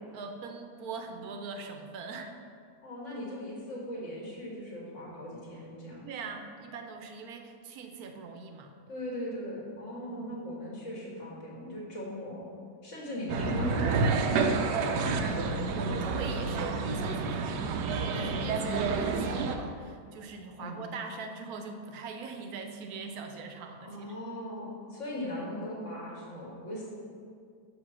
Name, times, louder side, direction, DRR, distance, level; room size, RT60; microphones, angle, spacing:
voice 1, 0.1-2.3 6.0-8.7 10.0-10.4 15.5-24.1, right 4 dB, 65° right, 5 dB, 1.1 m, -42 dB
voice 2, 2.8-6.1 8.9-12.4 12.8-15.0 18.1-18.6 20.6-20.8 23.8-26.9, equal, 45° left, -4 dB, 2.1 m, -39 dB
sound 1, 13.3-19.6, right 4 dB, 90° right, 1.2 m, -29 dB
6.7 x 5.2 x 6.1 m, 2.3 s
omnidirectional pair, 1.8 m